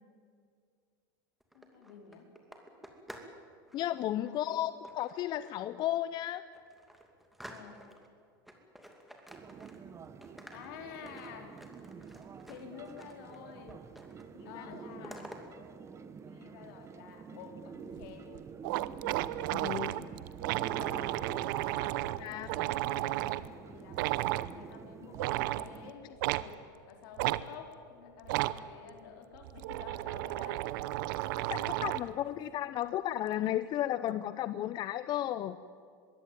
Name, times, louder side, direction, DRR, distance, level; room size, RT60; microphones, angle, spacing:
sound 1, 1.4-3.4 3.7-4.0 4.8-5.7 6.1-6.2 6.5-8.1 8.5-10.0 10.2-13.4 13.7-14.3 14.5-15.4, equal, ahead, 2.6 m, -51 dB
voice 1, 1.5-2.3 3.8-4.7 7.5-7.8 10.5-11.6 12.5-13.7 14.4-15.4 16.2-18.3 20.8-21.2 21.5-30.7, left 7 dB, 70° left, 3 dB, 4.2 m, -50 dB
voice 2, 3.7-6.4 14.3-15.1 19.5-20.1 22.2-22.5 31.5-35.6, left 12 dB, 40° left, 14 dB, 0.6 m, -34 dB
sound 2, 9.3-25.9, right 6 dB, 25° right, 1.2 m, -48 dB
sound 3, 18.0-18.1 18.4-18.5 18.6-23.5 23.9-24.5 25.1-25.7 26.2-26.5 27.2-27.4 28.2-28.6 29.4-32.1, right 17 dB, 65° right, 0.8 m, -33 dB
22.0 x 16.5 x 9.3 m, 2.3 s
supercardioid pair, 120°, 12 cm